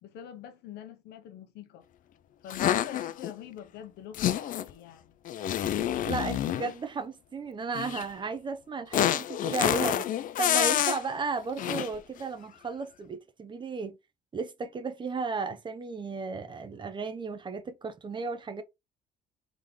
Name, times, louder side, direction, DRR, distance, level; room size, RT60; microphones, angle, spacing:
voice 1, 0.0-1.8 2.4-5.1, left 10 dB, 80° left, 0.9 m, -45 dB
sound 1, 2.5-3.3 4.1-4.7 5.2-6.7 7.7-8.0 8.9-11.0 11.6-11.9, left 11 dB, 55° left, 0.4 m, -28 dB
voice 2, 6.1-10.1 10.4-14.0 14.3-18.6, right 4 dB, 30° right, 0.7 m, -34 dB
3.6 x 3.2 x 3.6 m
cardioid pair, 110°, 17 cm